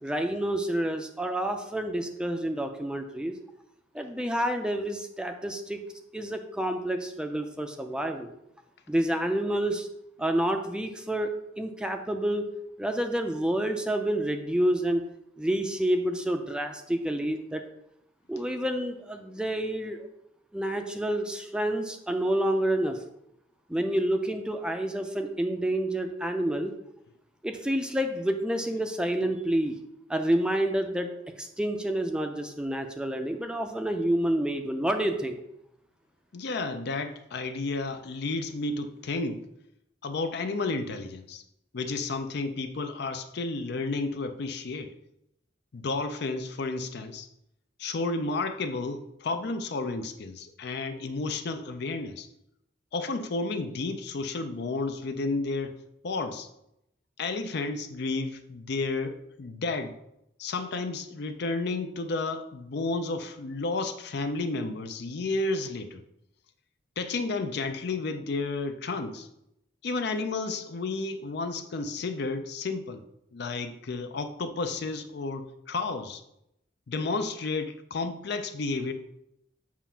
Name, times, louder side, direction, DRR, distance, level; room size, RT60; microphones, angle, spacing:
voice 1, 0.0-3.3 3.9-5.8 6.1-8.3 8.9-9.9 10.2-11.3 11.6-12.4 12.8-15.1 15.4-17.6 18.3-20.1 20.5-23.0 23.7-26.7 27.4-29.8 30.1-31.1 31.4-35.4, right 1 dB, 5° right, 5 dB, 0.4 m, -28 dB
voice 2, 36.3-39.4 40.0-41.4 41.7-44.9 45.7-47.3 47.8-52.3 52.9-55.7 56.0-56.5 57.2-60.0 60.4-66.0 67.0-69.3 69.8-73.0 73.3-76.2 76.9-78.9, left 3 dB, 60° left, 8 dB, 0.5 m, -32 dB
7.2 x 2.5 x 5.6 m, 0.81 s
head